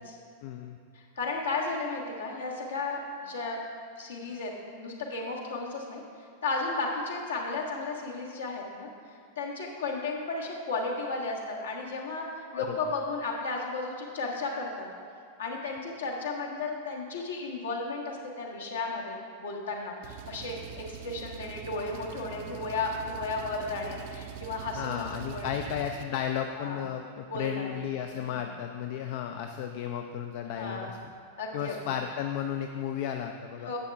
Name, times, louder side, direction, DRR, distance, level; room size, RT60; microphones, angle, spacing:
voice 1, 0.4-0.8 12.5-12.8 24.7-31.0 31.5-33.7, left 9 dB, 50° left, 6 dB, 0.4 m, -34 dB
voice 2, 0.9-3.6 4.0-6.0 6.4-8.9 9.4-14.9 15.4-25.6 26.6-26.8 27.3-27.7 28.1-28.4 30.5-31.0 31.4-31.8 33.6-33.8, left 3 dB, 65° left, -1 dB, 1.4 m, -34 dB
Engine, 20.0-26.0, right 10 dB, 50° right, 0.5 m, -43 dB
10.5 x 7.7 x 3.4 m, 2.3 s
figure-of-eight pair, 90°, 0 cm